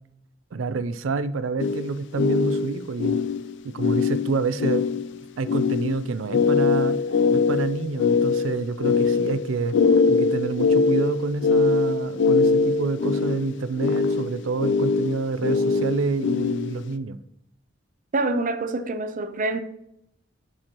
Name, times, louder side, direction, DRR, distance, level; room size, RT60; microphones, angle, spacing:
voice 1, 0.5-3.2 3.7-4.8 5.4-7.0 7.3-9.8 10.1-17.2, right 3 dB, 85° right, 0.5 m, -28 dB
sound 1, 1.6-16.9, left 4 dB, 65° left, 0.4 m, -22 dB
voice 2, 18.1-19.6, right 2 dB, 45° right, 0.6 m, -26 dB
8.7 x 6.2 x 2.9 m
head